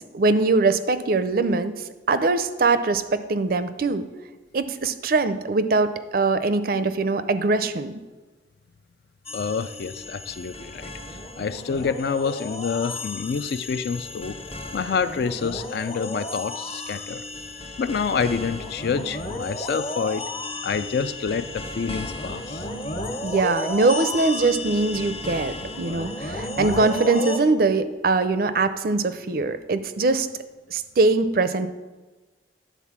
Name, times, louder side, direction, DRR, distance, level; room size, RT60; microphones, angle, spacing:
voice 1, 0.0-1.7 2.1-4.1 4.5-7.9 23.2-30.3 30.7-31.7, right 3 dB, 50° right, 11 dB, 0.5 m, -22 dB
voice 2, 9.3-14.4 14.7-17.2 17.8-20.3 20.6-22.7, left 5 dB, 55° left, 13 dB, 0.4 m, -27 dB
sound 1, 9.3-27.4, left 2 dB, 30° left, 0.7 m, -33 dB
10.5 x 4.0 x 7.2 m, 1.3 s
head